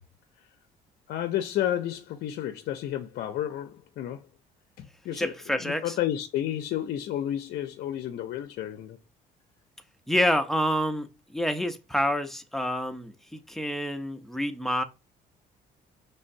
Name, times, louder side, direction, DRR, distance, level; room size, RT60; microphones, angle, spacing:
voice 1, 1.1-4.3 4.8-5.3 5.6-9.0, left 11 dB, 70° left, 0.5 m, -31 dB
voice 2, 5.2-5.9 10.1-11.1 11.3-14.8, equal, ahead, 0.5 m, -28 dB
5.4 x 3.3 x 2.6 m
cardioid pair, 110°, 17 cm